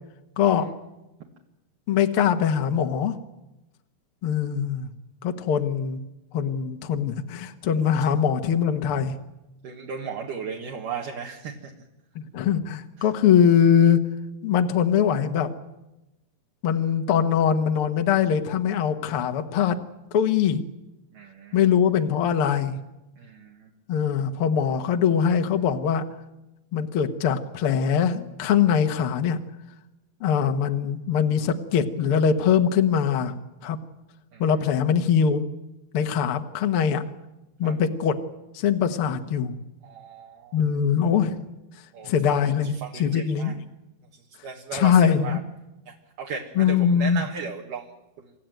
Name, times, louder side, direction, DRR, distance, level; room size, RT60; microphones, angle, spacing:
voice 1, 0.4-0.7 1.9-3.2 4.2-4.9 5.2-6.0 6.3-9.2 12.1-14.0 14.4-15.5 16.6-19.8 20.1-20.6 21.5-22.8 23.9-26.0 26.7-29.4 30.2-33.3 33.6-33.8 34.4-35.4 35.9-37.0 37.6-38.2 38.5-39.5 40.5-41.4 42.0-43.5 44.7-45.4 46.5-47.2, left 8 dB, 80° left, 7 dB, 1.2 m, -22 dB
voice 2, 9.6-11.7 21.1-21.6 23.2-23.7 34.3-34.4 37.6-37.7 39.8-40.6 41.9-42.5 42.8-43.5 44.4-45.4 45.9-47.9, right 6 dB, 60° right, -1 dB, 3.0 m, -36 dB
27.5 x 14.0 x 9.2 m, 0.97 s
omnidirectional pair, 4.6 m